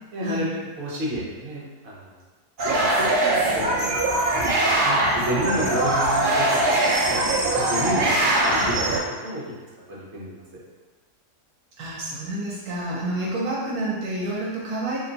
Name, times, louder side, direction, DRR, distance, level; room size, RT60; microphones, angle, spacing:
voice 1, 0.1-2.2 2.7-6.6 6.8-7.2 7.5-9.5 9.9-10.4, right 1 dB, 50° right, -6 dB, 0.9 m, -31 dB
sound 1, 2.6-9.0, right 1 dB, 90° right, 0.4 m, -21 dB
voice 2, 11.8-15.0, right 1 dB, 70° right, -6 dB, 1.2 m, -29 dB
3.0 x 2.2 x 3.8 m, 1.3 s
omnidirectional pair, 1.7 m